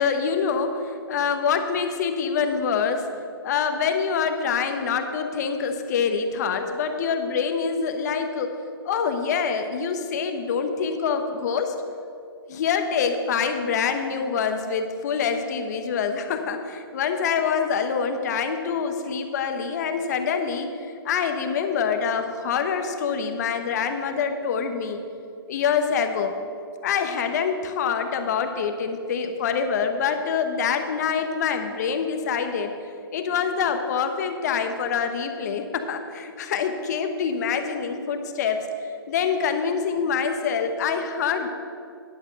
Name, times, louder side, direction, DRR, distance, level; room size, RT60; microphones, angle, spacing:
voice 1, 0.0-3.1 3.4-8.6 8.8-11.7 12.5-25.0 25.5-26.3 26.8-32.7 33.1-38.7 39.1-41.5, left 6 dB, 45° left, 7 dB, 0.9 m, -25 dB
10.5 x 6.3 x 6.2 m, 2.5 s
hypercardioid pair, 155°, 13 cm